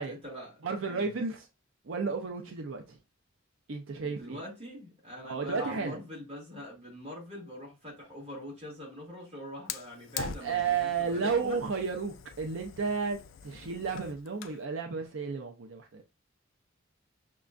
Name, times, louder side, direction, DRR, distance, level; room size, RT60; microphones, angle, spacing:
voice 1, 0.0-1.1 4.0-11.6, equal, 30° right, 1.8 m, -43 dB
voice 2, 0.6-1.4 1.9-3.0 3.7-4.4 5.2-6.0 10.2-16.0, right 5 dB, 75° right, 0.5 m, -32 dB
Fire, 9.7-14.6, left 7 dB, 70° left, 0.4 m, -44 dB
6.1 x 2.2 x 2.4 m
head